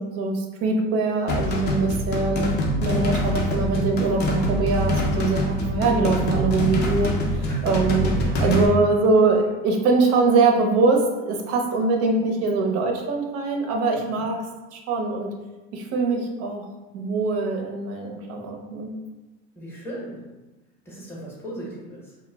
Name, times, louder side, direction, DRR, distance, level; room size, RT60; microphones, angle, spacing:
voice 1, 0.0-8.1 8.4-14.4 14.7-15.3 15.7-16.7 16.9-19.0, right 3 dB, 50° right, 2 dB, 0.5 m, -23 dB
sound 1, 1.3-8.7, left 1 dB, 30° left, 0.4 m, -25 dB
voice 2, 8.2-8.8 13.9-14.3 19.6-20.4 20.8-22.2, right 1 dB, 5° left, -4 dB, 0.7 m, -37 dB
2.1 x 2.1 x 3.3 m, 1.1 s
supercardioid pair, 120°, 32 cm